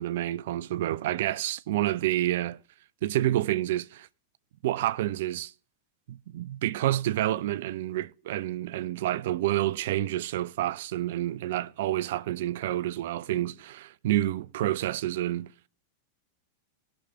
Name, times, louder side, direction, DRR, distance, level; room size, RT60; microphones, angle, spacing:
voice 1, 0.0-2.6 3.0-4.1 4.6-5.5 6.1-15.5, right 14 dB, 55° right, 0.4 m, -29 dB
18.5 x 6.3 x 3.4 m
figure-of-eight pair, 90°, 0 cm